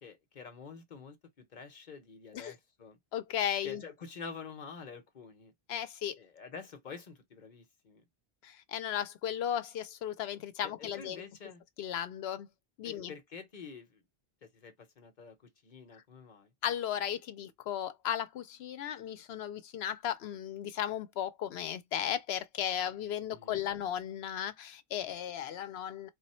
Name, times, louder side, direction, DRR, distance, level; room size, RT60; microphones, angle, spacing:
voice 1, 0.0-3.0 3.6-5.5 6.2-8.0 10.6-11.6 12.8-14.0 14.4-15.3 15.6-16.5 23.3-23.7, left 5 dB, 50° left, 1.0 m, -48 dB
voice 2, 3.1-3.8 5.7-6.2 8.4-11.2 11.8-12.5 12.8-13.1 16.6-26.1, left 10 dB, 85° left, 0.8 m, -35 dB
3.2 x 2.1 x 4.2 m
omnidirectional pair, 1.0 m